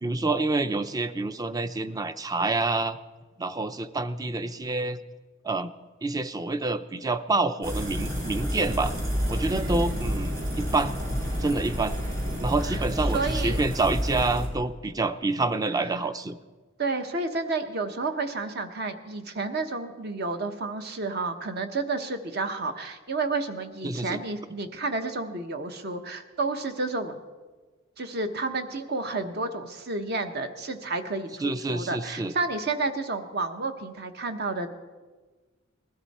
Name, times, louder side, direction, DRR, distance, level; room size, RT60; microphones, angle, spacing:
voice 1, 0.0-3.0 3.4-5.0 5.4-5.7 6.0-8.9 9.3-11.0 11.4-12.0 12.4-16.4 23.8-24.2 31.4-32.3, right 3 dB, 20° right, 12 dB, 0.5 m, -27 dB
sound 1, 7.6-14.5, equal, 75° right, 4.1 m, -29 dB
voice 2, 9.5-10.0 13.1-13.6 16.8-27.2 28.0-34.7, right 3 dB, 50° right, 7 dB, 1.1 m, -31 dB
20.5 x 13.0 x 4.2 m, 1.4 s
head